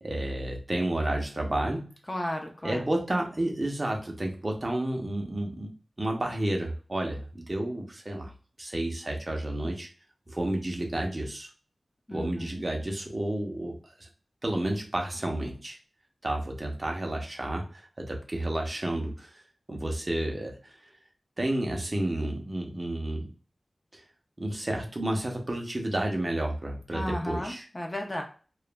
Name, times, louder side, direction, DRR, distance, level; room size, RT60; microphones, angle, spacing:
voice 1, 0.0-1.9 2.6-5.7 6.0-8.3 8.6-9.9 10.3-11.5 12.1-14.1 14.4-15.8 16.2-19.4 19.7-20.8 21.4-23.3 23.9-24.0 24.4-27.6, right 1 dB, 35° right, 1 dB, 0.8 m, -31 dB
voice 2, 2.1-2.8 12.1-12.6 26.9-28.2, left 1 dB, 25° left, 2 dB, 0.6 m, -34 dB
3.0 x 2.3 x 2.2 m, 0.38 s
wide cardioid pair, 70°, 0 cm